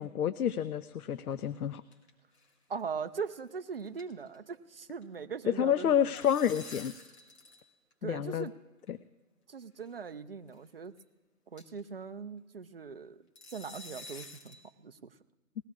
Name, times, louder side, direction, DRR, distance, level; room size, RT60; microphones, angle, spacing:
voice 1, 0.0-1.8 5.5-6.9 8.0-8.5 8.9-9.0, left 9 dB, 80° left, 14 dB, 0.6 m, -29 dB
sound 1, 1.3-2.1 2.3-2.5 2.8-2.9 3.3-3.5 3.7-4.6 4.8-5.1 5.9-7.6 7.9-8.0 8.9-9.0 9.8-10.0 10.5-10.6 11.0-11.1 11.6-11.9 13.4-14.6, left 2 dB, 45° left, 2.4 m, -49 dB
voice 2, 2.7-6.1 8.0-8.5 9.5-10.9 11.5-13.2 13.5-15.1, right 5 dB, 45° right, 9 dB, 0.5 m, -40 dB
20.5 x 15.5 x 2.4 m, 1.2 s
hypercardioid pair, 160°, 44 cm